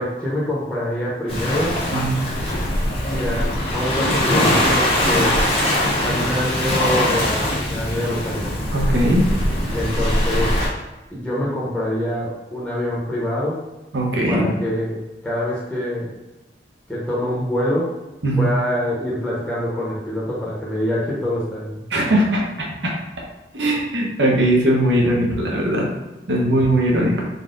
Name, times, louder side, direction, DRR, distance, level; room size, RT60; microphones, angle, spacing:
voice 1, 0.0-1.9 3.0-5.4 6.0-8.6 9.7-10.6 11.1-13.6 14.3-16.1 16.9-17.9 18.4-21.8, left 1 dB, 5° left, -8 dB, 0.9 m, -25 dB
Waves surf, 1.3-10.7, left 1 dB, 35° left, 1.1 m, -21 dB
voice 2, 8.7-9.3 13.9-14.5 18.2-18.5 21.9-23.0 23.5-25.9 26.3-27.2, right 1 dB, 75° right, -2 dB, 0.9 m, -19 dB
4.0 x 2.3 x 3.8 m, 1.1 s
head